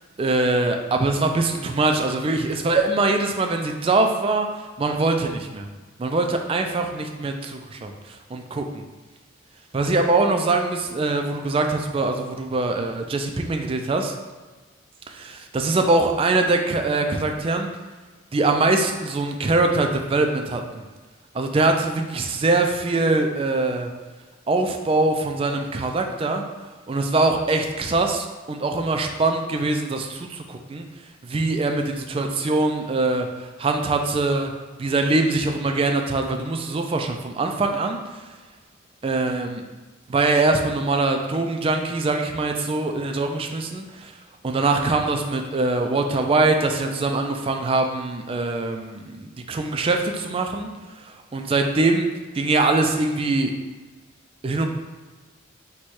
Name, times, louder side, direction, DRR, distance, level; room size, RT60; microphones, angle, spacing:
voice 1, 0.2-5.7 6.0-8.8 9.7-14.1 15.1-17.7 18.3-20.8 21.3-23.9 24.5-26.4 26.9-30.9 31.2-33.3 33.6-34.5 34.8-38.2 39.0-39.6 40.1-44.1 44.4-50.7 51.1-52.1 52.3-53.5 54.4-54.7, right 2 dB, 25° right, 4 dB, 0.3 m, -23 dB
4.6 x 2.2 x 4.2 m, 1.3 s
head